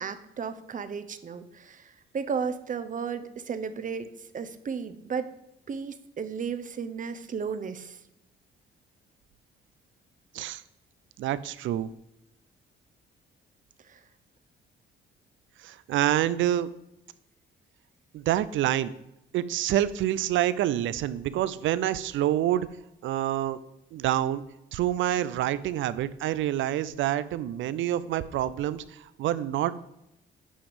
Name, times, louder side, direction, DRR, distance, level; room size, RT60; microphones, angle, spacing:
voice 1, 0.0-5.3 5.7-8.0 13.8-14.0, right 6 dB, 40° right, 11 dB, 0.8 m, -34 dB
voice 2, 11.2-11.9 15.6-16.7 18.1-18.9 19.3-22.7 23.0-23.6 23.9-24.4 24.7-29.7, right 12 dB, 75° right, 16 dB, 0.5 m, -27 dB
8.7 x 5.3 x 5.1 m, 0.85 s
cardioid pair, 90°, 20 cm